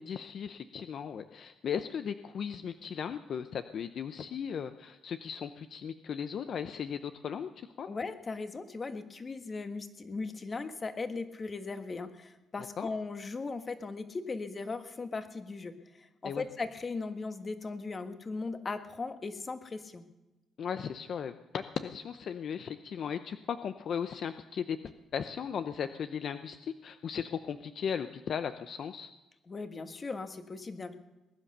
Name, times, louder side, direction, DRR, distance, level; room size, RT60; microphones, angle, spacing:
voice 1, 0.0-7.9 12.8-12.9 16.2-16.4 20.6-29.1, left 7 dB, 60° left, 10 dB, 0.7 m, -37 dB
voice 2, 7.9-20.0 29.5-30.9, left 3 dB, 35° left, 8 dB, 1.5 m, -38 dB
20.5 x 10.0 x 6.7 m, 1.0 s
cardioid pair, 90°, 0 cm